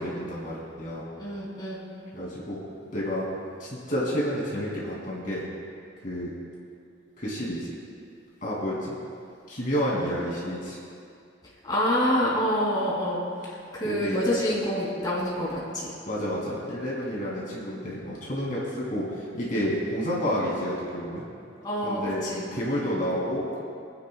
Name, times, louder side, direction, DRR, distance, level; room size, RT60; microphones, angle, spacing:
voice 1, 0.0-1.0 2.1-2.6 2.9-3.3 3.6-5.4 6.0-6.3 7.2-7.7 8.4-9.0 9.5-10.8 13.8-14.2 16.0-21.2 21.8-22.2 22.5-23.6, equal, 45° left, -6 dB, 2.9 m, -30 dB
voice 2, 1.2-1.9 11.6-15.9 21.6-22.5, equal, 20° left, -6 dB, 2.9 m, -27 dB
28.0 x 9.8 x 2.4 m, 2.4 s
head